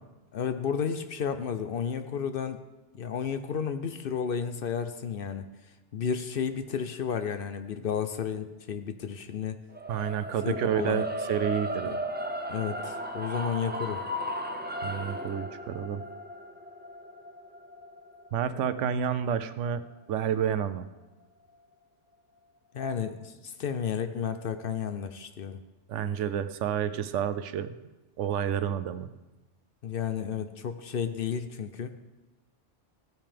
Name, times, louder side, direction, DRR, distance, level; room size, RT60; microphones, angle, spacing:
voice 1, 0.3-2.6 2.9-5.5 5.9-9.6 10.4-11.0 11.8-11.9 12.5-14.0 22.7-25.6 29.8-32.0, left 7 dB, 60° left, 9 dB, 0.7 m, -32 dB
sound 1, 9.7-19.9, equal, 15° right, 0.4 m, -36 dB
voice 2, 9.9-12.0 14.8-16.0 18.3-19.8 20.1-20.8 25.9-27.7 28.2-29.1, right 9 dB, 80° right, 13 dB, 0.9 m, -29 dB
16.0 x 8.9 x 3.4 m, 1.1 s
omnidirectional pair, 1.2 m